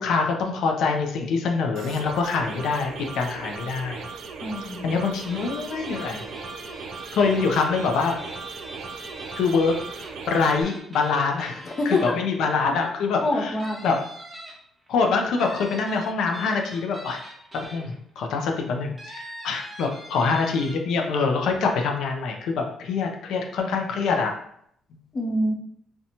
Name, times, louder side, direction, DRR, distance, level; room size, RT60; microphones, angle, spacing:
voice 1, 0.0-4.0 4.8-6.2 7.1-8.1 9.3-9.7 10.3-13.6 13.8-14.0 14.9-17.2 17.5-24.3, left 4 dB, 80° left, 2 dB, 0.3 m, -25 dB
sound 1, 1.8-10.6, right 5 dB, 70° right, 0.3 m, -38 dB
voice 2, 4.4-5.1 11.7-12.2 13.2-13.8 25.1-25.5, left 1 dB, 35° left, 1 dB, 0.6 m, -26 dB
sound 2, 5.2-12.6 13.1-13.2 13.6-14.9 15.4-18.2 19.0-20.7, right 1 dB, 20° right, 0.8 m, -43 dB
2.7 x 2.1 x 2.7 m, 0.69 s
cardioid pair, 90°, 0 cm